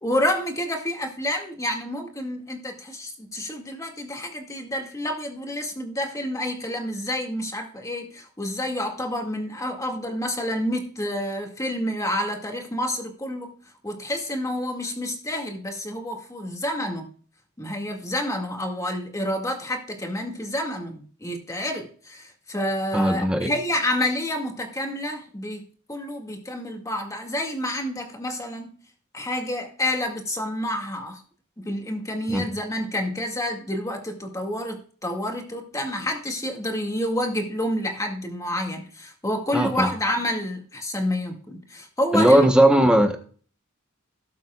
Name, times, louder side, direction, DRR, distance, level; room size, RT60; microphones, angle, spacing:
voice 1, 0.0-13.5 13.8-17.1 17.6-25.6 25.9-28.7 29.1-31.2 31.6-42.5, left 1 dB, 15° left, 2.1 m, -29 dB
voice 2, 22.9-23.5 32.3-32.5 39.5-39.9 42.1-43.2, right 1 dB, 5° right, 1.0 m, -18 dB
18.0 x 7.5 x 2.4 m
head